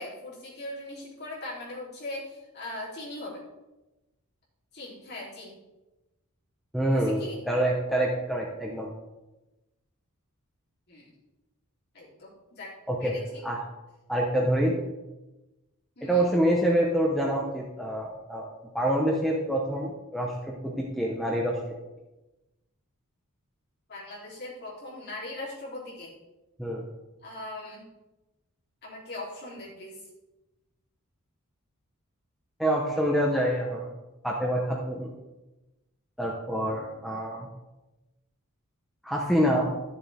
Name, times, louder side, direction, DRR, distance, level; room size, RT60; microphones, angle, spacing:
voice 1, 0.0-3.4 4.7-5.6 6.9-7.4 10.9-11.0 11.9-12.7 13.0-13.4 16.0-16.3 23.9-26.1 27.2-27.9 28.8-30.0, left 2 dB, 50° left, -5 dB, 3.3 m, -40 dB
voice 2, 6.7-8.9 12.9-13.2 13.4-13.6 14.1-14.8 16.0-18.5 18.7-21.6 26.6-26.8 32.6-33.9 34.2-35.1 36.2-37.5 39.0-39.7, right 1 dB, ahead, -2 dB, 1.0 m, -26 dB
12.5 x 7.1 x 3.6 m, 1.0 s
head